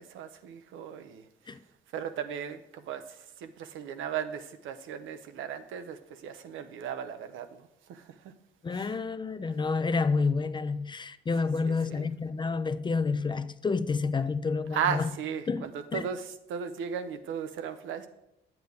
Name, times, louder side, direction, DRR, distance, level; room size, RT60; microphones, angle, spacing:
voice 1, 0.0-1.6 1.9-8.3 8.7-8.9 11.6-12.1 14.7-18.1, right 8 dB, 85° right, 0.7 m, -36 dB
voice 2, 8.6-14.8 15.5-15.6 15.9-16.0, left 4 dB, 25° left, 0.4 m, -29 dB
8.1 x 8.0 x 3.5 m
cardioid pair, 90°, 20 cm